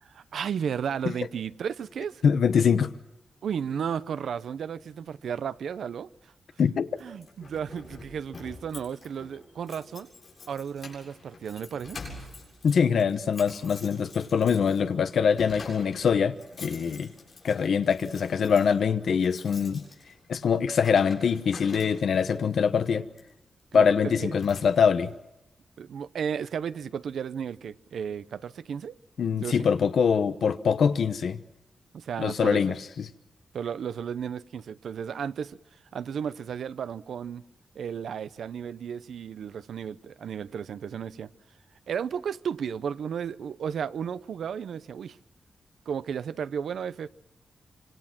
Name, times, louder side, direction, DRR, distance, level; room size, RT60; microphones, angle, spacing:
voice 1, 0.0-2.2 3.4-6.1 7.0-10.1 10.5-12.3 23.7-24.3 25.8-29.0 29.4-29.7 31.9-32.6 33.5-35.6 35.9-37.4 37.7-41.3 41.9-45.2 45.9-47.1, right 7 dB, 80° right, 0.8 m, -34 dB
voice 2, 2.2-2.9 6.6-6.9 12.6-17.1 17.4-19.8 20.3-23.1 23.7-25.1 29.2-31.4 32.2-33.1, left 6 dB, 65° left, 1.1 m, -24 dB
Keys jangling, 7.0-22.3 23.1-23.4 23.8-23.9 24.2-25.1, left 3 dB, 35° left, 7.7 m, -47 dB
26.0 x 26.0 x 6.1 m
wide cardioid pair, 180°, 0 cm